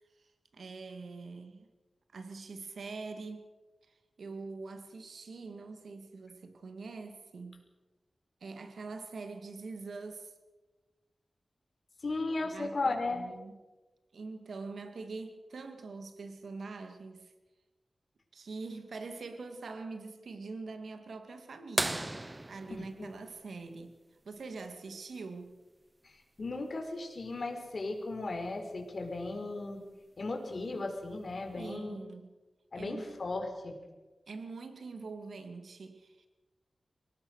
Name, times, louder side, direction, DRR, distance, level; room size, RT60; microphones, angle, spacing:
voice 1, 0.2-1.7 2.1-3.5 3.8-7.6 8.4-10.3 12.5-13.6 14.1-17.3 18.3-22.1 22.5-24.0 24.2-25.6 31.6-32.3 32.7-33.2 34.3-36.3, right 3 dB, 80° right, 7 dB, 2.3 m, -44 dB
voice 2, 12.0-13.3 22.7-23.1 26.0-29.8 30.2-32.0 32.7-33.8, left 2 dB, 55° left, 3 dB, 4.8 m, -36 dB
sound 1, 21.8-24.2 26.1-26.2 28.5-28.6 30.3-30.6 31.3-31.4, right 1 dB, 20° right, 0.9 m, -36 dB
24.0 x 19.0 x 6.6 m, 1.2 s
wide cardioid pair, 70°, 0 cm